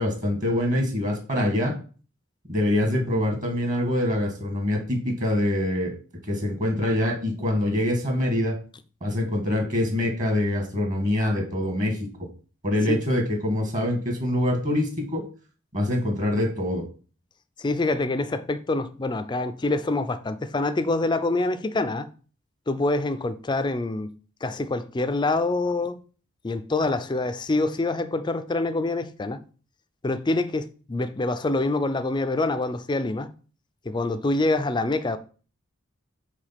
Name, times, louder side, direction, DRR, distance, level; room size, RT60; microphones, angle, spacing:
voice 1, 0.0-1.7 2.5-6.0 6.3-8.5 9.0-12.0 12.6-15.2 15.7-16.8, left 1 dB, 40° right, 1.6 m, -24 dB
voice 2, 17.6-22.1 22.7-24.1 24.4-26.0 26.4-29.4 30.0-33.3 33.9-35.2, left 2 dB, 20° left, 0.4 m, -26 dB
5.0 x 3.7 x 5.7 m
head